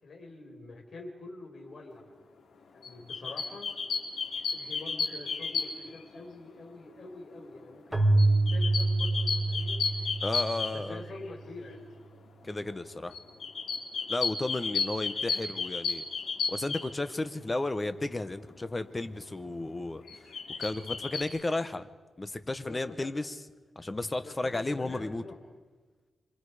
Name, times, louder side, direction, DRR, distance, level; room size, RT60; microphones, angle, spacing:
voice 1, 0.0-2.1 2.7-3.7 4.5-9.9 10.7-11.8 22.6-23.1 24.2-25.4, left 2 dB, 50° left, -1 dB, 4.6 m, -46 dB
sound 1, 2.8-6.0 8.2-11.3 13.1-16.9 20.1-21.2, left 5 dB, 90° left, 3.3 m, -33 dB
Keyboard (musical), 7.9-11.4, right 2 dB, 10° right, 1.7 m, -27 dB
voice 2, 10.2-11.0 12.4-13.2 14.1-16.0 16.5-20.0 20.6-21.9 22.2-23.4 23.7-25.2, left 2 dB, 20° left, 10 dB, 1.1 m, -33 dB
26.0 x 26.0 x 5.0 m, 1.3 s
wide cardioid pair, 130°, 0 cm